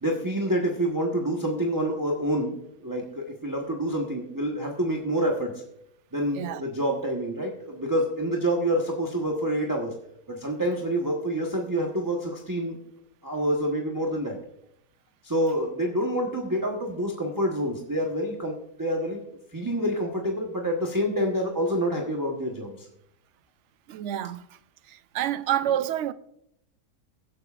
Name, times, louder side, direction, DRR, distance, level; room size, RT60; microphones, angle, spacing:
voice 1, 0.0-5.5 6.1-9.9 10.3-12.8 13.2-14.4 15.2-19.2 19.5-22.8, equal, 15° right, 1.1 m, -27 dB
voice 2, 23.9-24.6 24.9-26.1, right 11 dB, 65° right, 0.7 m, -28 dB
22.5 x 7.8 x 2.5 m
omnidirectional pair, 1.6 m